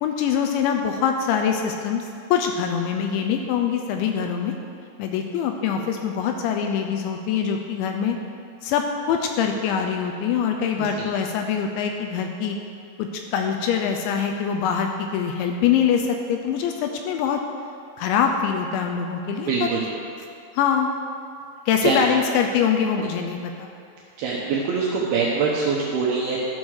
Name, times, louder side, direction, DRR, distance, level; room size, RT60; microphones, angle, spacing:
voice 1, 0.0-4.5 5.0-8.2 8.6-12.6 13.0-17.4 18.0-19.7 20.5-20.9 21.7-23.7, left 7 dB, 80° left, 4 dB, 2.8 m, -24 dB
voice 2, 19.5-19.8 21.8-22.1 24.2-26.4, right 5 dB, 75° right, -3 dB, 2.3 m, -23 dB
12.5 x 6.4 x 6.3 m, 2.4 s
omnidirectional pair, 5.6 m